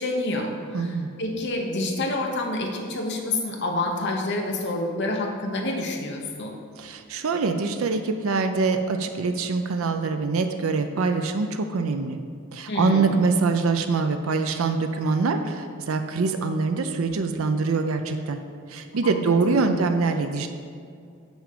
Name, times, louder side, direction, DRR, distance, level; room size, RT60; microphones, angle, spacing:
voice 1, 0.0-6.5 12.7-13.2 19.0-19.9, left 2 dB, 50° left, 1 dB, 1.0 m, -28 dB
voice 2, 0.7-1.1 6.8-12.2 12.5-18.4 18.7-20.5, right 4 dB, 65° right, 7 dB, 0.5 m, -24 dB
6.2 x 5.0 x 6.7 m, 2.3 s
head